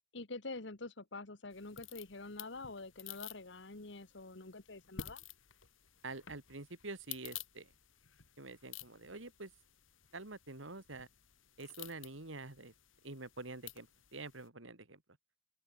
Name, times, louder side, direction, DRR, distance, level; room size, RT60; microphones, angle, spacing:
voice 1, 0.1-5.2, left 3 dB, 65° left, 1.6 m, -46 dB
sound 1, 1.5-14.5, left 9 dB, 85° left, 2.8 m, -53 dB
voice 2, 6.0-7.7 8.4-9.5 10.1-11.1 11.6-12.7 13.0-15.0, right 3 dB, 75° right, 2.8 m, -47 dB
open air
head